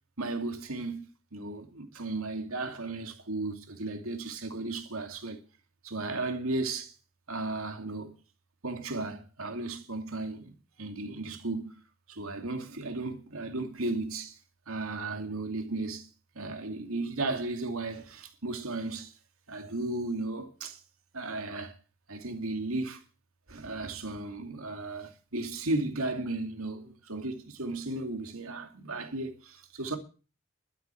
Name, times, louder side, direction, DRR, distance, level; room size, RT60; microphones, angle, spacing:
voice 1, 0.2-5.4 5.8-6.9 7.3-8.1 8.6-10.5 10.8-11.7 12.1-14.4 14.7-16.1 16.3-19.1 19.5-20.8 21.1-21.8 22.1-23.0 23.5-30.0, right 2 dB, 90° right, 2.6 m, -35 dB
12.5 x 9.6 x 7.8 m
head